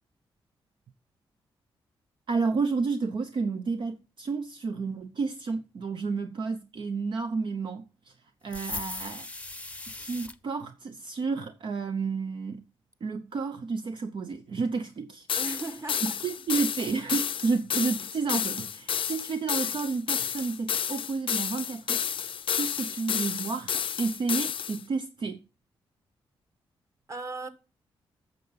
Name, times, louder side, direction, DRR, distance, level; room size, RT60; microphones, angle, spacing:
voice 1, 2.3-9.3 9.9-12.6 13.0-15.3 16.0-22.0 22.5-25.4, right 4 dB, 55° right, 0.7 m, -31 dB
sound 1, 8.5-10.4, left 2 dB, 15° left, 0.8 m, -38 dB
sound 2, 15.3-24.8, left 8 dB, 60° left, 0.5 m, -31 dB
voice 2, 15.4-16.2 27.1-27.5, right 3 dB, 30° right, 1.6 m, -37 dB
8.9 x 6.8 x 5.7 m
cardioid pair, 65°, 10 cm